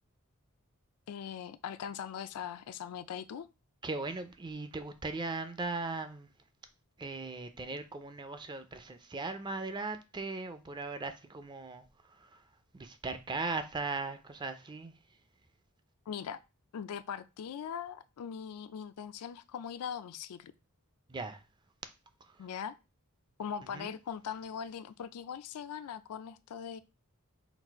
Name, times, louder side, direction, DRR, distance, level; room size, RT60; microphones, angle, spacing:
voice 1, 1.1-3.5 16.1-16.4 16.7-20.5 22.4-22.7 23.4-26.8, left 8 dB, 80° left, 0.4 m, -40 dB
voice 2, 3.8-6.3 7.0-12.4 12.7-14.9 21.1-21.4 22.2-22.5 23.7-23.9, right 3 dB, 20° right, 0.4 m, -38 dB
4.0 x 2.4 x 4.5 m
head